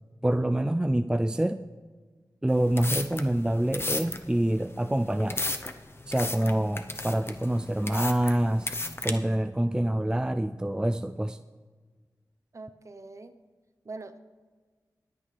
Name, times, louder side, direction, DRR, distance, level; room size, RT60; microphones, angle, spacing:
voice 1, 0.2-1.6 2.4-5.4 6.1-8.7 9.0-11.4, right 1 dB, 10° right, 10 dB, 0.3 m, -26 dB
sound 1, 2.5-9.1, left 2 dB, 35° left, 0.8 m, -34 dB
voice 2, 12.5-13.4 13.8-14.2, right 3 dB, 45° right, 9 dB, 0.8 m, -43 dB
21.0 x 8.7 x 3.3 m, 1.4 s
wide cardioid pair, 65°, 7 cm